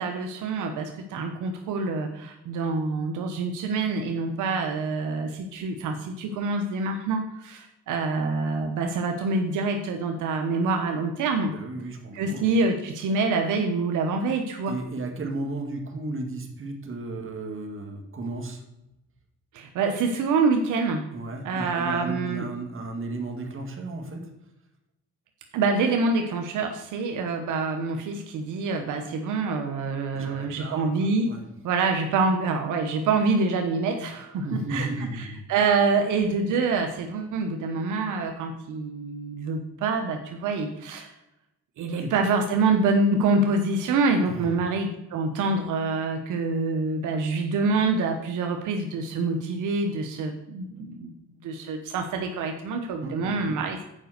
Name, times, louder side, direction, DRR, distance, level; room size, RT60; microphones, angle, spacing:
voice 1, 0.0-11.5 12.1-14.7 19.5-21.0 21.4-22.5 25.5-31.3 31.6-34.9 35.2-41.1 41.8-51.1 51.4-53.8, right 3 dB, 80° right, 4 dB, 1.0 m, -26 dB
voice 2, 11.5-12.5 14.7-18.6 21.1-24.3 30.1-31.4 34.4-35.5 41.9-42.1 44.3-44.5 53.0-53.6, right 2 dB, 45° right, 3 dB, 1.9 m, -34 dB
7.6 x 5.2 x 6.5 m, 0.89 s
cardioid pair, 90°, 30 cm